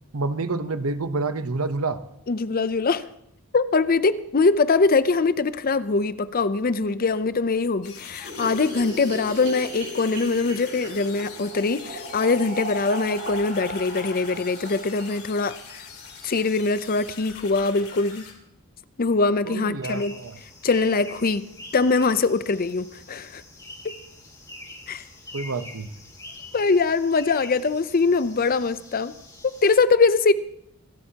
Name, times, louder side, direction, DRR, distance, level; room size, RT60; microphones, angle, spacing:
voice 1, 0.1-2.0 19.5-20.4 25.3-25.9, right 3 dB, 70° right, 0.9 m, -28 dB
voice 2, 2.3-3.1 3.5-15.8 16.2-18.3 19.0-20.2 20.6-21.5 21.7-23.4 23.8-23.9 24.9-25.0 26.5-29.1 29.6-30.3, left 4 dB, 40° left, 0.6 m, -22 dB
sound 1, 7.8-18.3, left 7 dB, 80° left, 2.6 m, -43 dB
sound 2, 8.2-16.5 16.7-16.8 17.1-17.2 17.4-17.5 17.7-18.3, right 1 dB, 50° right, 4.0 m, -37 dB
sound 3, 19.8-29.8, left 2 dB, 15° left, 2.3 m, -44 dB
25.5 x 12.5 x 2.9 m
head